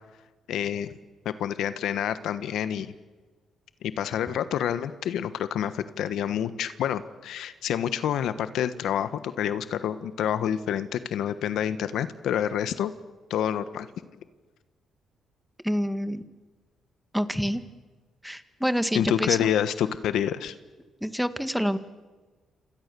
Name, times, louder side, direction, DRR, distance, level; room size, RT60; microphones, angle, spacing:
voice 1, 0.5-0.9 1.2-2.9 3.8-12.9 13.3-13.9 18.9-20.5, left 9 dB, 80° left, 12 dB, 1.3 m, -28 dB
voice 2, 15.6-16.2 17.1-17.6 18.2-19.5 21.0-21.8, equal, ahead, 10 dB, 1.8 m, -27 dB
29.0 x 27.5 x 7.0 m, 1.3 s
cardioid pair, 90°, 0 cm